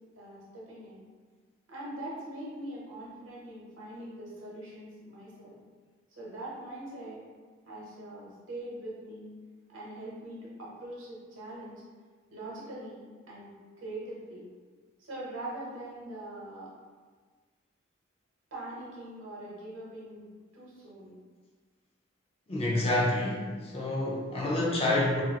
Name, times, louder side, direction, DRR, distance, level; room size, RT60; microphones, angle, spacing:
voice 1, 0.2-1.0 1.7-5.6 6.1-7.2 7.7-9.3 9.7-11.8 12.3-13.5 13.8-14.4 15.0-16.7 18.5-20.3 20.5-21.1, right 1 dB, 75° right, -6 dB, 0.9 m, -42 dB
voice 2, 22.5-25.2, left 1 dB, 30° left, -4 dB, 0.5 m, -28 dB
2.5 x 2.5 x 2.8 m, 1.5 s
head